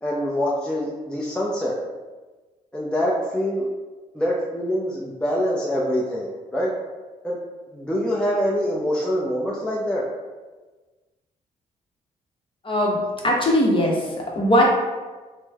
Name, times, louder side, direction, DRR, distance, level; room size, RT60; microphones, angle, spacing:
voice 1, 0.0-1.8 2.7-3.7 4.1-6.7 7.2-7.4 7.7-10.0, equal, 5° left, -4 dB, 0.5 m, -25 dB
voice 2, 12.6-13.0 13.2-14.6, left 1 dB, 35° left, -2 dB, 0.9 m, -20 dB
3.0 x 2.0 x 3.4 m, 1.3 s
cardioid pair, 70°, 15 cm